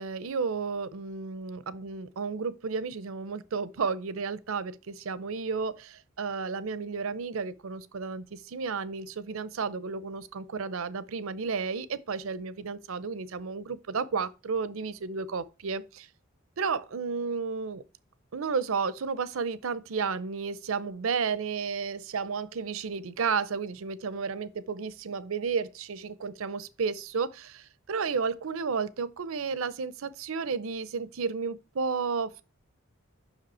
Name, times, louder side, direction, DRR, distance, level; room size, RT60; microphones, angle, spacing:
voice 1, 0.0-16.1 16.6-17.8 18.3-32.4, right 5 dB, 75° right, 0.6 m, -32 dB
6.0 x 5.1 x 4.2 m
head